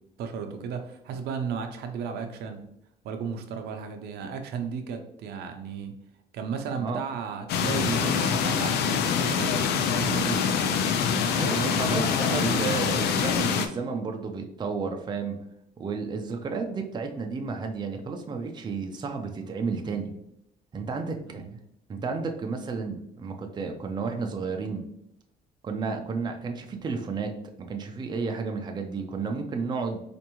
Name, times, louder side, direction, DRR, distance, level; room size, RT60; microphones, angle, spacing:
voice 1, 0.2-2.7 3.0-5.9 6.3-10.5 11.4-13.2 21.3-21.6, right 6 dB, 75° right, 5 dB, 0.6 m, -34 dB
sound 1, 7.5-13.7, left 7 dB, 75° left, 0.4 m, -25 dB
voice 2, 11.3-15.4 15.8-20.1 20.7-21.4 21.9-24.8 25.6-27.3 27.6-30.0, right 4 dB, 25° right, 3 dB, 0.5 m, -32 dB
4.4 x 2.6 x 2.9 m, 0.77 s
cardioid pair, 110°, 17 cm